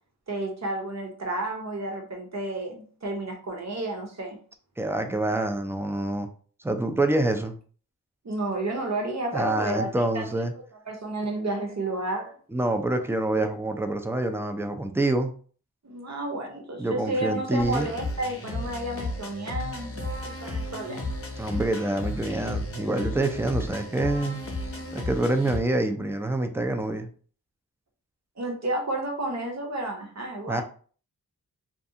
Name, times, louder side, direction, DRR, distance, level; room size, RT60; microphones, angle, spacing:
voice 1, 0.3-4.4 8.2-10.4 10.9-12.3 15.8-21.1 28.4-30.6, right 2 dB, 45° right, 2 dB, 0.8 m, -31 dB
voice 2, 4.8-6.3 6.6-7.6 9.3-10.5 12.5-15.3 16.8-17.9 21.4-24.4 24.9-27.1 30.5-30.6, right 2 dB, 5° right, 6 dB, 0.3 m, -26 dB
sound 1, 17.6-25.6, left 1 dB, 40° left, 0.7 m, -34 dB
2.5 x 2.3 x 2.7 m, 0.43 s
wide cardioid pair, 65°, 36 cm